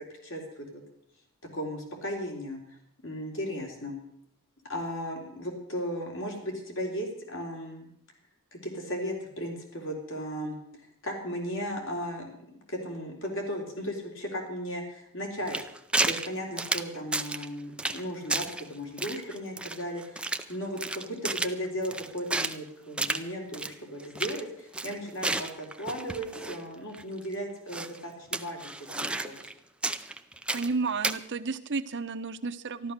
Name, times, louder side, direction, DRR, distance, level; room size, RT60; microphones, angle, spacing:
voice 1, 0.2-0.8 1.5-2.6 3.0-4.0 4.7-7.9 8.5-10.6 11.0-15.6 16.0-28.6 28.9-29.5, equal, 60° left, 1 dB, 3.7 m, -36 dB
sound 1, 15.5-16.3 16.6-17.5 17.8-18.0 18.3-18.6 19.0-20.5 20.8-22.6 23.0-23.2 23.5-23.7 24.0-24.4 24.7-26.6 26.9-27.0 27.7-28.0 28.3-29.5 29.8-30.7 31.0-31.2, right 2 dB, 5° right, 0.5 m, -31 dB
voice 2, 30.5-32.9, right 4 dB, 55° right, 10 dB, 0.9 m, -32 dB
13.5 x 12.0 x 6.6 m, 0.72 s
head